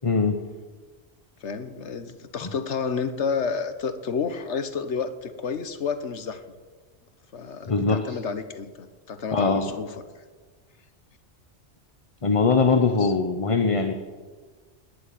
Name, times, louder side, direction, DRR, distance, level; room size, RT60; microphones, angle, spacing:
voice 1, 0.0-0.4 2.4-2.5 7.6-8.2 9.3-9.6 12.2-13.9, left 4 dB, 30° left, 6 dB, 0.9 m, -22 dB
voice 2, 1.4-6.4 7.3-9.9 12.9-13.1, left 5 dB, 80° left, 11 dB, 1.4 m, -30 dB
19.5 x 7.0 x 9.4 m, 1.4 s
omnidirectional pair, 1.2 m